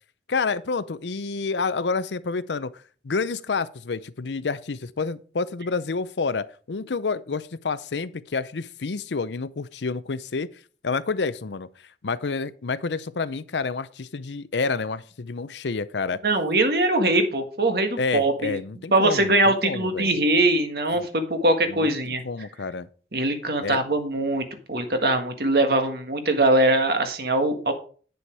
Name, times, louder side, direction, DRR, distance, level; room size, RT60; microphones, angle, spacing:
voice 1, 0.3-10.5 10.8-11.7 12.0-16.2 18.0-20.2 20.9-21.1 21.7-22.9 23.6-23.8, left 4 dB, 85° left, 0.6 m, -29 dB
voice 2, 16.2-18.6 18.9-22.2 23.1-27.7, right 2 dB, 60° right, 1.6 m, -22 dB
9.2 x 6.9 x 4.7 m
head